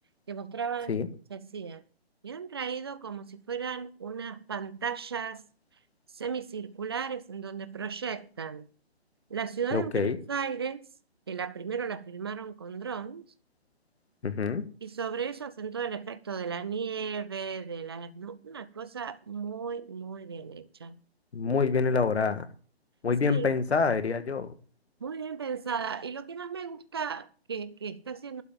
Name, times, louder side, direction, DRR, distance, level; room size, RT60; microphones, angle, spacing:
voice 1, 0.3-1.0 1.3-1.8 2.2-5.4 6.1-8.7 9.3-10.9 11.3-13.2 14.8-21.0 23.2-23.5 25.0-28.4, right 6 dB, 25° right, 0.5 m, -35 dB
voice 2, 9.7-10.2 14.2-14.6 21.3-22.5 23.0-24.5, left 5 dB, 85° left, 1.7 m, -26 dB
12.0 x 5.7 x 9.1 m
hypercardioid pair, 165°, 32 cm